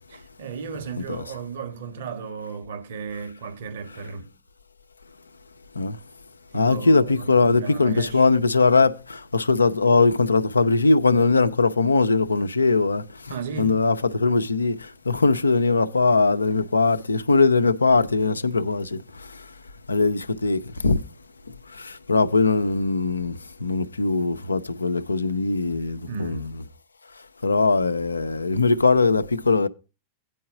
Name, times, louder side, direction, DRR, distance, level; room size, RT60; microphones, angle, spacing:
voice 1, 0.1-4.3 6.5-8.3 13.3-13.8 26.1-26.5, right 5 dB, 60° right, 1.6 m, -35 dB
voice 2, 6.5-13.0 13.6-14.7 15.1-19.0 19.9-21.0 22.1-23.3 23.6-26.5 27.4-29.7, left 3 dB, 80° left, 0.5 m, -20 dB
9.2 x 4.6 x 6.8 m
figure-of-eight pair, 90°, 0 cm